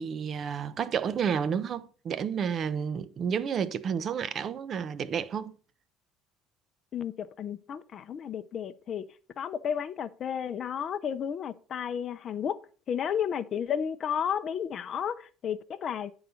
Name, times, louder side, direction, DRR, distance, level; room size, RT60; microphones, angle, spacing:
voice 1, 0.0-5.5, right 7 dB, 40° right, 0.6 m, -31 dB
voice 2, 6.9-9.1 9.4-12.6 12.9-16.1, left 8 dB, 40° left, 0.5 m, -32 dB
9.3 x 4.0 x 5.6 m
cardioid pair, 120°, 0 cm